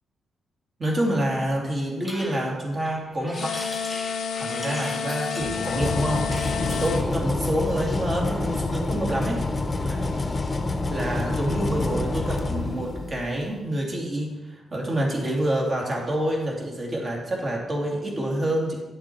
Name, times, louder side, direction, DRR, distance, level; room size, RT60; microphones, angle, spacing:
voice 1, 0.8-3.5 4.4-9.6 9.9-10.1 10.9-18.8, right 1 dB, 35° right, -1 dB, 2.5 m, -27 dB
sound 1, 2.0-7.1, equal, 10° right, 1.2 m, -40 dB
sound 2, 3.3-7.0, left 6 dB, 70° left, 0.6 m, -30 dB
sound 3, 5.4-13.4, left 2 dB, 25° left, 0.9 m, -27 dB
10.5 x 6.7 x 4.5 m, 1.2 s
cardioid pair, 120°, 0 cm